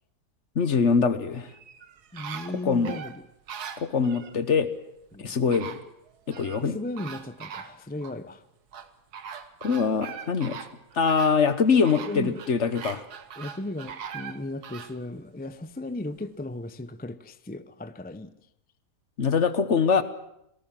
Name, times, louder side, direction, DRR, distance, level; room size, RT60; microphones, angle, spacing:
voice 1, 0.5-1.5 2.7-2.9 3.8-4.7 5.2-5.8 6.3-6.8 9.6-10.6 10.9-13.1 19.2-20.0, left 5 dB, 50° left, 1.4 m, -23 dB
sound 1, 1.5-4.4 5.1-5.2 5.5-6.6 7.0-8.2 8.7-15.0 15.4-15.5, right 7 dB, 80° right, 1.7 m, -41 dB
voice 2, 2.1-3.3 5.1-5.6 6.5-8.4 12.1-12.4 13.4-18.3, left 1 dB, 10° left, 0.4 m, -36 dB
26.5 x 18.5 x 7.5 m
omnidirectional pair, 1.7 m